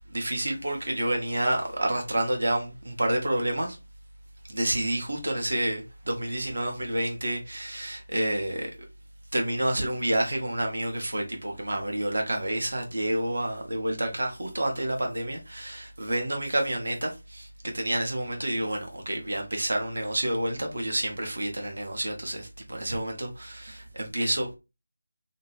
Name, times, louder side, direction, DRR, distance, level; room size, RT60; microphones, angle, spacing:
voice 1, 0.1-3.8 4.5-8.7 9.3-24.6, right 1 dB, 65° right, 1.0 m, -29 dB
2.8 x 2.0 x 2.9 m
figure-of-eight pair, 160°, 0 cm